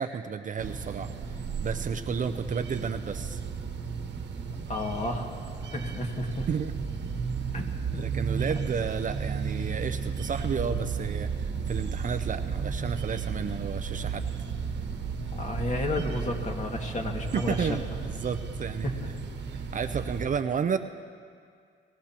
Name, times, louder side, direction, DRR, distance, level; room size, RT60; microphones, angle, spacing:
voice 1, 0.0-3.4 6.5-6.7 7.9-14.3 17.3-18.9 19.7-20.8, right 6 dB, 40° right, 8 dB, 0.6 m, -32 dB
sound 1, 0.6-20.3, right 5 dB, 60° right, 1.4 m, -34 dB
voice 2, 4.7-5.3 5.7-6.5 7.5-8.0 15.3-17.7 18.8-18.9, left 1 dB, 35° left, 1 dB, 2.0 m, -32 dB
24.5 x 16.5 x 3.0 m, 2.2 s
cardioid pair, 90°, 20 cm